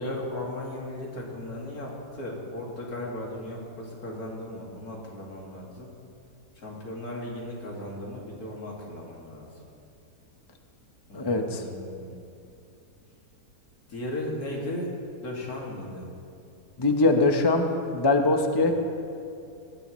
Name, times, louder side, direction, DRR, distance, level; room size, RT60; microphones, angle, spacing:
voice 1, 0.0-5.9 6.6-9.5 11.1-12.3 13.9-14.9 15.2-16.1 18.6-18.7, left 1 dB, 60° left, -3 dB, 2.7 m, -36 dB
voice 2, 11.1-11.6 16.8-18.7, left 2 dB, 30° left, 4 dB, 0.5 m, -22 dB
18.5 x 13.5 x 3.1 m, 2.6 s
omnidirectional pair, 1.8 m